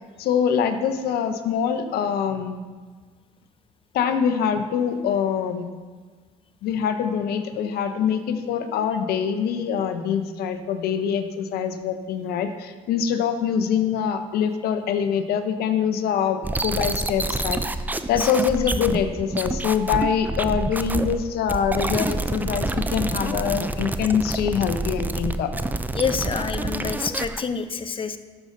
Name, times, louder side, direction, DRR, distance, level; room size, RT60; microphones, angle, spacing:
voice 1, 0.2-2.6 3.9-5.7 6.6-17.6 18.1-25.5, left 7 dB, 65° left, 8 dB, 1.0 m, -24 dB
sound 1, 16.4-21.2 21.5-27.4, right 2 dB, 10° right, 0.5 m, -27 dB
voice 2, 18.0-18.3 25.9-28.2, left 6 dB, 30° left, 10 dB, 0.8 m, -27 dB
12.0 x 6.6 x 4.0 m, 1.5 s
supercardioid pair, 70°, 17 cm